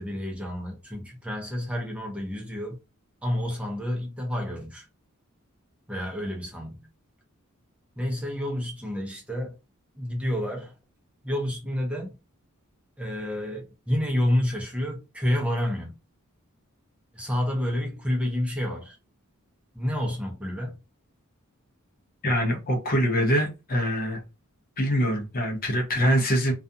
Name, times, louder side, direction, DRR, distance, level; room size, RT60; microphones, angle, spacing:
voice 1, 0.0-2.8 3.2-4.9 5.9-6.9 8.0-9.6 9.9-10.7 11.2-12.1 13.0-15.9 17.1-19.0 19.7-20.8, left 1 dB, 5° right, 0.6 m, -29 dB
voice 2, 22.2-24.2 24.8-26.5, equal, 40° left, 0.7 m, -24 dB
2.4 x 2.3 x 2.6 m
head